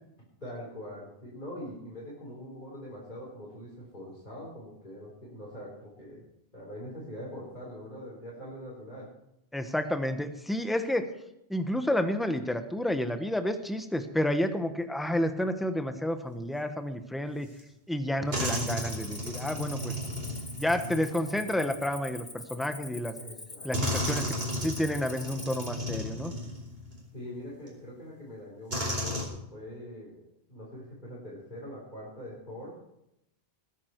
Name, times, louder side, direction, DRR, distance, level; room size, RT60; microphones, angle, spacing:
voice 1, 0.4-6.2 6.5-9.1 23.1-23.7 27.1-32.8, equal, 45° left, -6 dB, 4.3 m, -43 dB
voice 2, 9.5-11.1 11.5-17.5 17.9-20.0 20.5-23.1 23.6-26.3, left 1 dB, ahead, 8 dB, 1.1 m, -30 dB
sound 1, 17.6-17.7 18.3-21.9 22.9-23.0 23.7-27.1 27.7-27.8 28.7-29.2, equal, 60° right, 4.6 m, -34 dB
Cricket, 18.4-25.8, left 2 dB, 25° left, 1.3 m, -45 dB
20.5 x 10.0 x 4.6 m, 0.83 s
omnidirectional pair, 1.1 m